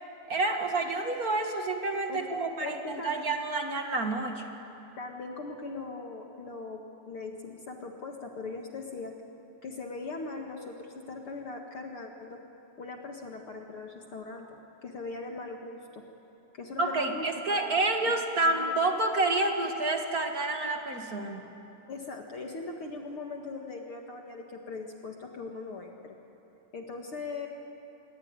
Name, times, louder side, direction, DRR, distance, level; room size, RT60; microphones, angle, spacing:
voice 1, 0.3-4.4 16.8-21.4, right 2 dB, 35° right, 4 dB, 1.7 m, -29 dB
voice 2, 2.1-3.2 5.0-9.2 9.6-12.4 12.8-16.0 16.5-18.1 18.4-18.9 21.9-26.2 26.7-27.5, left 3 dB, 45° left, 2 dB, 2.3 m, -40 dB
27.0 x 22.5 x 9.7 m, 2.8 s
omnidirectional pair, 3.8 m